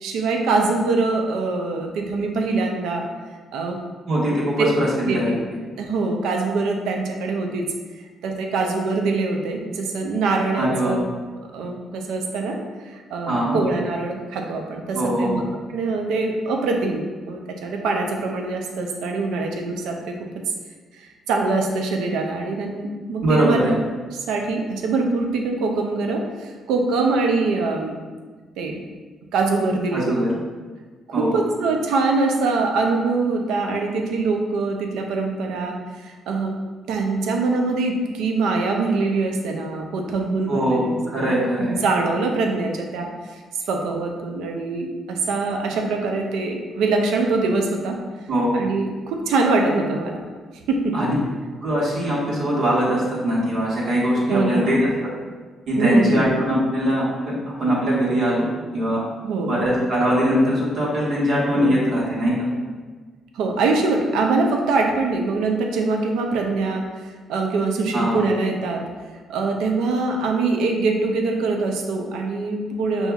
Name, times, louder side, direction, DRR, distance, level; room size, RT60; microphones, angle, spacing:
voice 1, 0.0-3.0 3.5-3.8 4.6-4.7 5.1-5.5 5.8-7.7 8.2-11.0 11.5-12.6 12.8-15.4 15.7-20.2 21.0-23.8 24.3-28.0 28.6-28.8 29.3-30.1 31.2-36.5 36.9-41.3 41.6-43.4 43.7-48.0 48.5-50.2 50.7-51.1 54.3-54.8 55.8-56.3 59.2-59.6 61.6-61.8 63.3-66.8 67.3-68.8 69.3-73.1, right 3 dB, 90° right, 2 dB, 0.5 m, -23 dB
voice 2, 4.1-5.3 10.6-11.0 13.3-13.6 14.9-15.4 23.2-23.7 29.9-30.3 31.1-31.3 40.5-41.7 48.3-48.6 50.9-51.1 51.6-55.1 55.7-58.5 58.7-59.0 59.5-62.5 67.9-68.2, equal, 70° right, -6 dB, 1.4 m, -21 dB
5.6 x 2.7 x 2.3 m, 1.4 s
cardioid pair, 90°, 0 cm